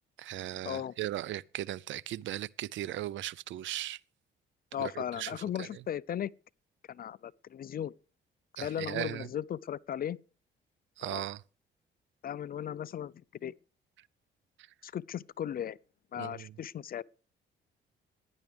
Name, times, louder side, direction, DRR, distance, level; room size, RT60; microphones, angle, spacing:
voice 1, 0.2-4.0 4.8-5.8 8.6-9.3 11.0-11.4 14.6-14.7 16.2-16.6, right 13 dB, 70° right, 0.5 m, -38 dB
voice 2, 4.7-6.3 6.9-7.9 8.6-10.2 11.0-11.2 12.2-13.1 13.4-13.5 14.8-15.8 16.1-17.0, left 10 dB, 45° left, 0.5 m, -36 dB
16.0 x 10.5 x 3.4 m
cardioid pair, 90°, 20 cm